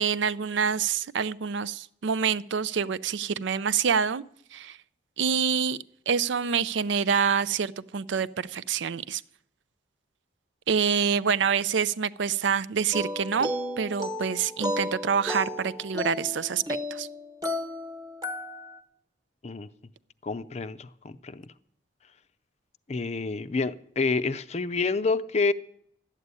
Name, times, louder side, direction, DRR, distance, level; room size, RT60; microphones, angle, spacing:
voice 1, 0.0-4.2 4.5-4.8 5.2-5.8 6.1-9.2 10.7-13.5 13.8-16.6 16.9-17.1, right 6 dB, 70° right, 0.5 m, -26 dB
sound 1, 12.9-18.8, left 1 dB, 20° right, 1.2 m, -33 dB
voice 2, 20.2-21.4 22.9-25.5, left 4 dB, 35° left, 0.5 m, -28 dB
12.0 x 8.4 x 9.5 m
head